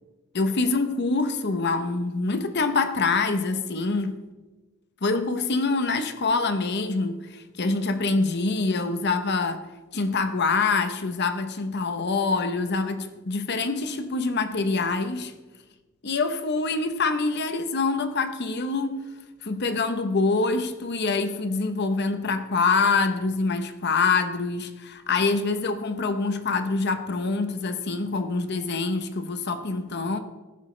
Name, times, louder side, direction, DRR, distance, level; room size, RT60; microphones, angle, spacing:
voice 1, 0.3-4.2 5.0-9.7 9.9-15.3 16.0-19.0 19.4-30.2, left 3 dB, 55° left, 0.9 m, -25 dB
15.0 x 12.5 x 3.3 m
head